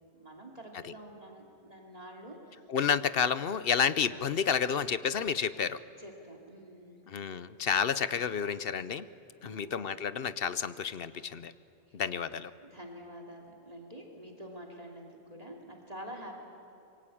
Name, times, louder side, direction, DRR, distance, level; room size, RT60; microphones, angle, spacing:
voice 1, 0.1-2.7 6.0-7.0 9.4-9.8 11.9-12.0 12.6-16.4, right 1 dB, 35° right, 2 dB, 2.8 m, -47 dB
voice 2, 2.7-5.8 7.1-9.1 9.4-11.5 11.9-12.5, left 7 dB, 60° left, 15 dB, 0.9 m, -30 dB
25.5 x 22.5 x 8.6 m, 2.8 s
omnidirectional pair, 1.1 m